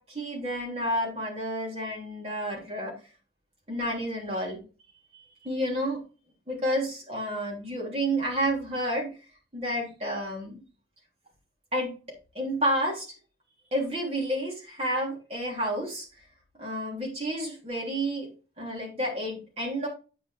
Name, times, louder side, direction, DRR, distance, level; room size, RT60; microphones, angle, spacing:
voice 1, 0.0-2.9 3.7-4.6 5.1-6.0 6.5-9.1 9.5-10.6 11.7-12.0 12.4-13.1 13.7-16.1 16.6-18.3 18.6-19.9, equal, 35° right, -2 dB, 3.3 m, -30 dB
8.8 x 5.3 x 3.4 m, 0.34 s
head